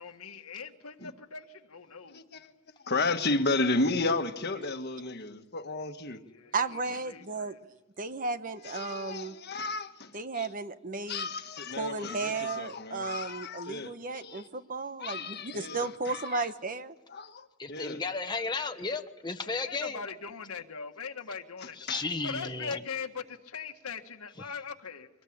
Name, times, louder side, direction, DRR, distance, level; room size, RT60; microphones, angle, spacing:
voice 1, 0.0-2.2 6.1-7.6 18.5-18.8 19.4-21.8 22.2-25.1, left 5 dB, 80° left, 1.7 m, -41 dB
voice 2, 2.1-2.5 2.8-6.2 8.6-10.5 11.1-14.5 15.0-16.5 17.1-18.0 21.6-22.0, left 3 dB, 45° left, 1.5 m, -33 dB
voice 3, 6.5-7.6 8.0-9.3 10.1-11.3 11.8-16.9, right 3 dB, 40° right, 1.0 m, -34 dB
voice 4, 17.6-20.0 21.8-22.8, left 4 dB, 20° left, 1.1 m, -34 dB
24.0 x 20.0 x 8.8 m
head